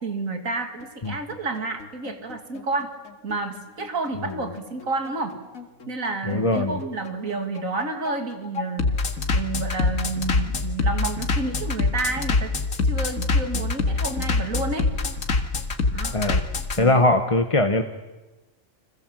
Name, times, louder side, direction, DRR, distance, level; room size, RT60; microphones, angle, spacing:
voice 1, 0.0-2.9 3.2-5.4 5.9-8.9 9.3-12.6 12.8-14.9 15.9-16.2 16.8-17.1, right 3 dB, 85° right, 6 dB, 2.9 m, -30 dB
Bass drum, 0.8-16.8, left 3 dB, 90° left, 2.3 m, -25 dB
voice 2, 6.3-6.8 16.1-16.4 16.8-17.8, left 2 dB, 25° left, 6 dB, 1.2 m, -20 dB
30.0 x 25.5 x 7.7 m, 1.2 s
omnidirectional pair, 1.4 m